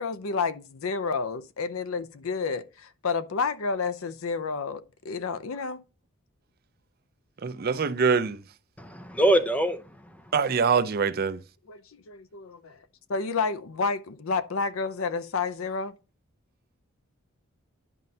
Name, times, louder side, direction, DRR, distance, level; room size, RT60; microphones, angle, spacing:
voice 1, 0.0-5.8 11.7-12.8 13.1-15.9, left 4 dB, 75° left, 0.6 m, -30 dB
voice 2, 7.4-8.4 10.3-11.4, right 5 dB, 45° right, 0.4 m, -24 dB
voice 3, 8.8-10.0, right 1 dB, 5° left, 0.6 m, -24 dB
10.5 x 5.2 x 2.7 m
head